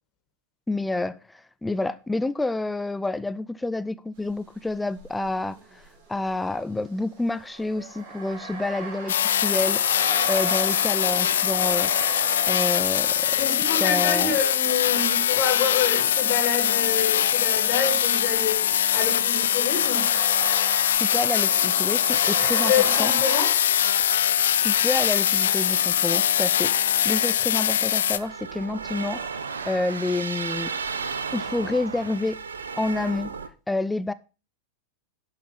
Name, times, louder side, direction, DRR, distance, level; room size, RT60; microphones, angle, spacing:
voice 1, 0.7-1.2 1.6-5.6 6.1-9.9 10.3-12.2 12.5-13.5 13.8-14.4 21.0-22.7 23.0-23.1 24.6-30.7 31.3-32.4 32.7-33.4 33.7-34.1, left 2 dB, 5° left, 0.5 m, -28 dB
sound 1, 4.3-4.5 5.0-17.2 17.4-23.6, right 3 dB, 45° right, 3.8 m, -37 dB
sound 2, 9.1-28.2, left 10 dB, 60° left, 0.5 m, -22 dB
voice 2, 13.4-20.1 22.6-23.7, left 6 dB, 40° left, 3.3 m, -27 dB
sound 3, 28.1-33.5, right 5 dB, 70° right, 0.9 m, -34 dB
11.0 x 5.7 x 5.5 m
figure-of-eight pair, 90°, 0 cm